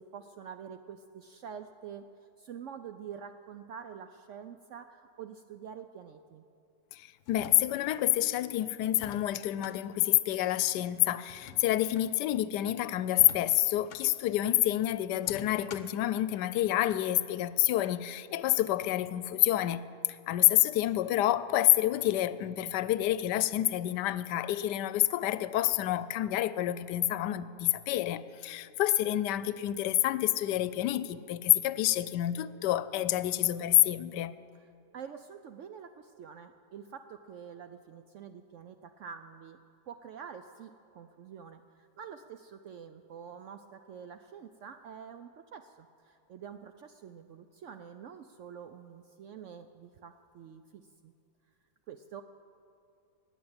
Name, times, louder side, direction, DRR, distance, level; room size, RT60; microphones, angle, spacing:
voice 1, 0.0-2.1 2.4-6.4 34.5-34.7 34.9-39.6 39.9-51.1 51.9-52.2, right 7 dB, 70° right, 0.7 m, -47 dB
voice 2, 6.9-19.8 20.1-34.3, left 14 dB, 90° left, 1.2 m, -28 dB
sound 1, 7.2-8.0 8.9-9.8 11.2-12.1 13.1-14.1 15.2-16.0, left 7 dB, 60° left, 1.0 m, -48 dB
19.0 x 7.2 x 8.7 m
omnidirectional pair, 1.8 m